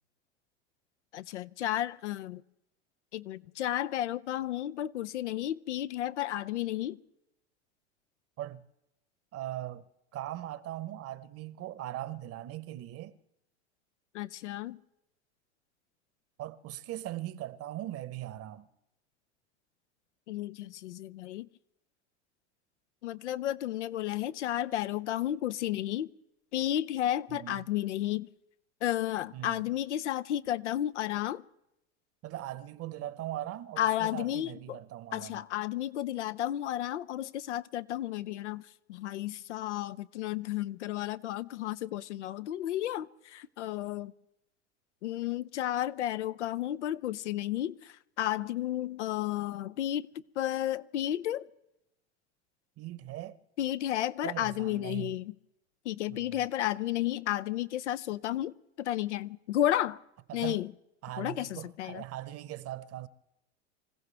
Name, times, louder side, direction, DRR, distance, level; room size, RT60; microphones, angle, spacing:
voice 1, 1.1-2.4 3.1-7.0 14.1-14.8 20.3-21.5 23.0-26.1 26.5-28.3 28.8-31.4 33.8-34.8 35.1-38.6 38.9-44.1 45.0-50.1 50.4-51.5 53.6-55.3 55.8-60.0 60.3-60.7 61.2-62.0, left 13 dB, 80° left, 0.7 m, -32 dB
voice 2, 9.3-9.8 10.1-13.2 16.4-18.7 27.3-27.6 29.3-29.6 32.2-35.4 52.8-53.4 54.2-55.2 56.1-56.5 60.3-60.6 61.0-63.1, right 14 dB, 45° right, 1.1 m, -40 dB
26.0 x 15.5 x 3.4 m
hypercardioid pair, 90°, 34 cm